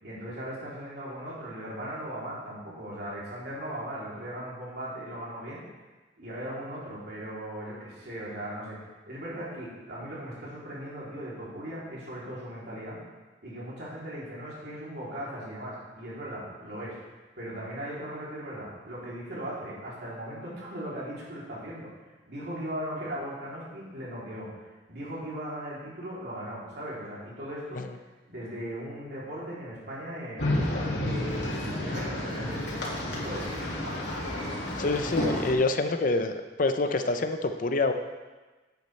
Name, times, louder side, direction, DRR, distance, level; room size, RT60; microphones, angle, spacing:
voice 1, 0.0-5.6 6.2-8.8 9.1-13.0 13.4-17.0 17.4-21.9 22.3-27.8 28.3-30.6 31.0-34.0, equal, 65° right, -7 dB, 3.1 m, -38 dB
sound 1, 30.4-35.5, left 1 dB, 85° left, 2.2 m, -31 dB
voice 2, 34.8-36.3 36.6-37.9, left 3 dB, 50° left, 8 dB, 0.6 m, -26 dB
10.5 x 8.3 x 3.3 m, 1.2 s
head